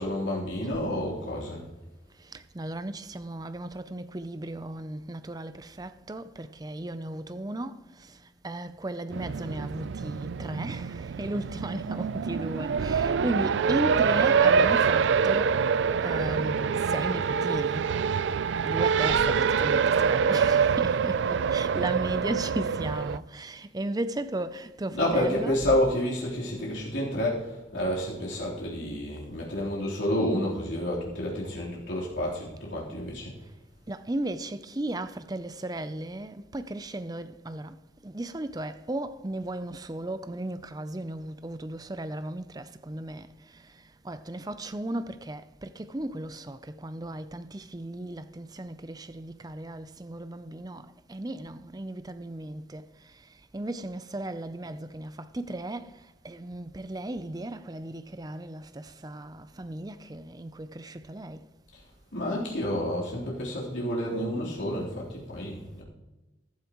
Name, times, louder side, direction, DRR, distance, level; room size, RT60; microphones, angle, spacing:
voice 1, 0.0-1.7 24.9-33.3 62.1-65.8, left 1 dB, 85° left, 3.6 m, -29 dB
voice 2, 2.2-15.7 16.0-17.9 18.6-25.6 33.9-37.8 38.0-52.9 53.5-56.0 56.2-61.5, right 1 dB, 20° right, 0.5 m, -35 dB
Race car auto racing, 9.1-23.2, right 6 dB, 75° right, 0.4 m, -25 dB
15.0 x 12.0 x 3.0 m
head